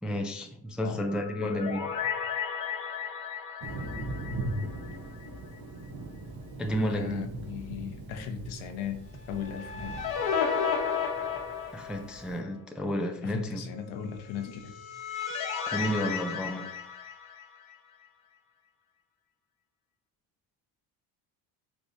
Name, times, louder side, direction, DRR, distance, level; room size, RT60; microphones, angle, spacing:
voice 1, 0.0-1.9 6.6-7.3 11.7-13.6 15.7-16.7, equal, ahead, 0.4 m, -31 dB
sound 1, 1.0-5.3 5.6-5.7 9.2-12.3 14.4-17.7, left 7 dB, 85° left, 1.6 m, -33 dB
voice 2, 1.4-1.7 6.9-10.0 13.2-14.8, left 7 dB, 70° left, 0.9 m, -37 dB
Thunder, 3.6-12.4, right 1 dB, 45° right, 1.1 m, -40 dB
4.9 x 3.3 x 2.6 m
supercardioid pair, 80°, 49 cm